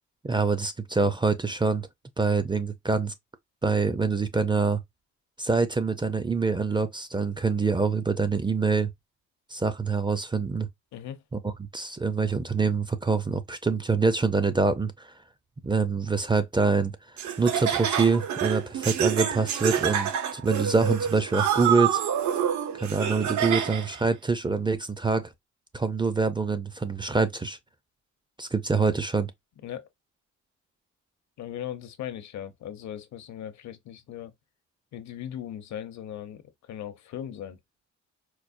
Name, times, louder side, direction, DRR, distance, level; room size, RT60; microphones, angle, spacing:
voice 1, 0.2-1.9 2.2-3.1 3.6-4.8 5.4-8.9 9.5-10.7 11.4-15.1 15.6-16.9 17.4-22.0 22.7-25.3 25.7-27.6 28.4-29.3, right 4 dB, 15° right, 0.4 m, -25 dB
voice 2, 10.9-11.2 29.6-29.9 31.4-34.3 34.9-37.6, left 10 dB, 65° left, 0.7 m, -38 dB
Laughter, 17.2-24.0, right 9 dB, 70° right, 0.8 m, -27 dB
4.6 x 2.1 x 2.5 m
cardioid pair, 90°, 30 cm